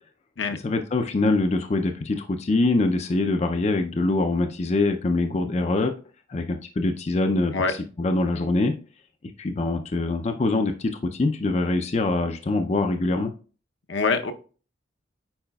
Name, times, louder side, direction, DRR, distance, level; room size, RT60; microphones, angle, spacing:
voice 1, 0.6-5.9 6.3-8.7 9.4-13.3, left 2 dB, 35° left, 6 dB, 0.4 m, -24 dB
voice 2, 13.9-14.3, left 4 dB, 75° left, 6 dB, 0.7 m, -24 dB
8.7 x 4.8 x 2.3 m, 0.37 s
head